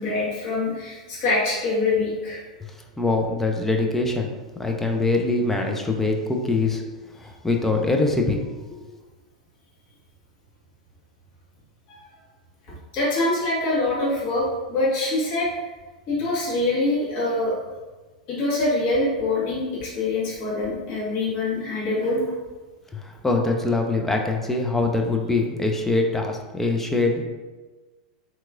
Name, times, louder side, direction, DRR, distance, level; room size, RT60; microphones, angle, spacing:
voice 1, 0.0-2.4 11.9-12.0 12.9-15.5 16.1-17.5 18.3-22.2, left 2 dB, 45° left, -7 dB, 1.4 m, -24 dB
voice 2, 3.0-6.8 7.2-8.4 8.7-8.8 23.0-27.2, left 3 dB, 10° left, 2 dB, 0.4 m, -23 dB
3.5 x 2.9 x 2.4 m, 1.2 s
figure-of-eight pair, 90°, 4 cm